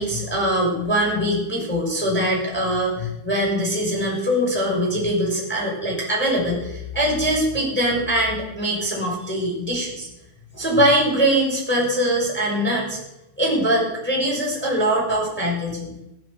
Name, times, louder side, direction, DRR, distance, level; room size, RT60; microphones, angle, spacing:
voice 1, 0.0-10.1 10.5-13.0 13.4-15.9, equal, ahead, -3 dB, 5.9 m, -22 dB
16.5 x 12.0 x 6.9 m, 0.86 s
omnidirectional pair, 5.5 m